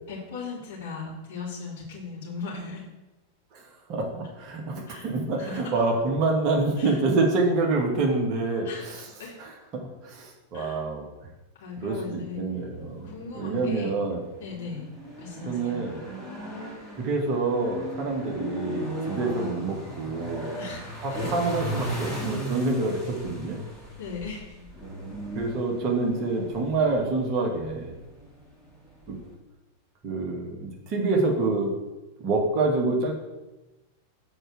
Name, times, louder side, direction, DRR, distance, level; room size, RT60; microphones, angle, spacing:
voice 1, 0.1-2.8 4.9-5.1 5.4-5.8 6.8-7.0 8.6-9.3 10.5-10.8 11.6-12.4 13.1-13.9 14.4-14.8 15.2-15.8 20.6-21.3 24.0-24.6, left 5 dB, 50° left, -5 dB, 3.1 m, -38 dB
voice 2, 3.9-9.1 9.4-11.0 11.8-14.2 15.4-16.0 17.0-20.5 21.0-23.6 25.3-28.0 29.1-29.2 30.0-31.7 32.2-33.1, right 3 dB, 40° right, 0 dB, 2.0 m, -27 dB
sound 1, 12.7-29.3, right 1 dB, 15° left, 2.9 m, -37 dB
7.7 x 4.8 x 6.7 m, 1.1 s
figure-of-eight pair, 90°, 0 cm